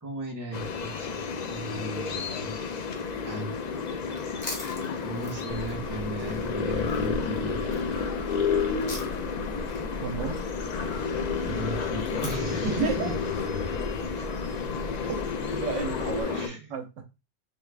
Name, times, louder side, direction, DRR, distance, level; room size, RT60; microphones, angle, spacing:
voice 1, 0.0-2.5 3.2-3.5 5.0-7.6 11.4-13.0 14.0-14.3 16.3-16.8, right 1 dB, 20° right, 0.8 m, -36 dB
sound 1, 0.5-16.5, left 5 dB, 80° left, 0.3 m, -31 dB
sound 2, 3.8-16.0, left 2 dB, 30° left, 0.8 m, -46 dB
sound 3, 5.4-16.2, equal, 50° right, 1.1 m, -40 dB
voice 2, 9.9-10.4 12.6-13.1 15.1-15.2 15.6-17.0, right 5 dB, 75° right, 1.0 m, -32 dB
3.5 x 2.3 x 3.3 m
omnidirectional pair, 1.3 m